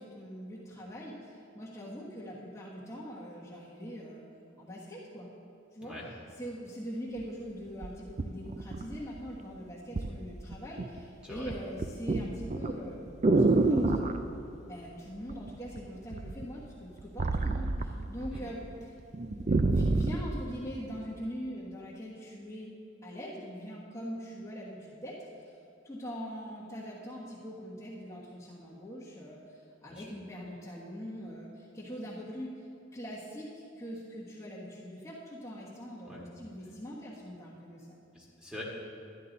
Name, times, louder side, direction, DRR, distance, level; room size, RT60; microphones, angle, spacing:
voice 1, 0.0-4.2 4.6-5.3 5.7-5.9 6.4-13.1 13.4-14.2 14.7-18.9 19.3-22.7 23.0-25.6 25.8-32.6 32.9-38.0, equal, 15° left, -8 dB, 1.3 m, -42 dB
sound 1, 7.2-7.3 7.8-9.3 10.0-10.2 10.5-11.0 11.3-14.2 15.3-15.8 16.1-18.4 18.7-18.8 19.1-20.3 20.9-21.0, right 2 dB, 35° right, 0.4 m, -28 dB
voice 2, 38.1-38.6, left 1 dB, 5° right, -5 dB, 1.8 m, -44 dB
12.5 x 10.5 x 4.0 m, 2.7 s
head